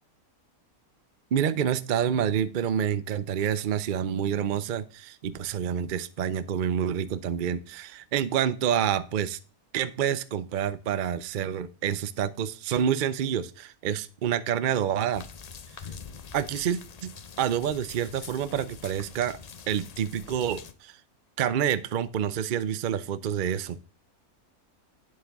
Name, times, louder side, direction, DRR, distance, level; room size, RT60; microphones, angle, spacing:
voice 1, 1.3-9.4 9.7-15.2 16.3-17.1 17.4-19.4 19.7-21.0 21.4-23.8, right 9 dB, 60° right, 14 dB, 0.5 m, -28 dB
sound 1, 15.1-20.7, left 6 dB, 65° left, 0.4 m, -45 dB
8.7 x 7.8 x 3.5 m, 0.36 s
omnidirectional pair, 1.6 m